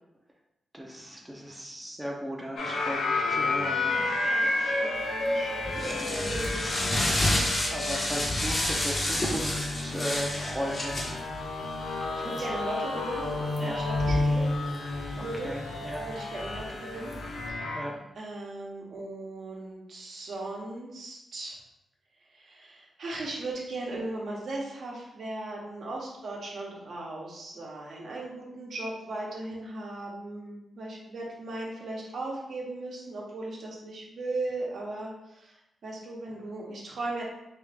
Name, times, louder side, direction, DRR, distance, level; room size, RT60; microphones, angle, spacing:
voice 1, 0.7-4.1 5.7-6.3 7.0-7.2 7.7-11.2 12.2-12.5 13.6-13.8 15.2-16.1 17.7-17.9, equal, 10° right, -1 dB, 0.5 m, -37 dB
sound 1, 2.6-17.8, left 2 dB, 80° left, 0.6 m, -31 dB
voice 2, 3.8-6.7 11.9-13.3 13.6-14.5 15.1-15.5 16.0-17.1 17.5-17.8 18.2-21.6 22.3-35.6 35.8-37.2, right 2 dB, 70° right, -3 dB, 0.9 m, -38 dB
sound 2, 5.1-17.5, left 1 dB, 35° left, 0.7 m, -32 dB
3.4 x 2.5 x 3.3 m, 0.88 s
cardioid pair, 95°, 0 cm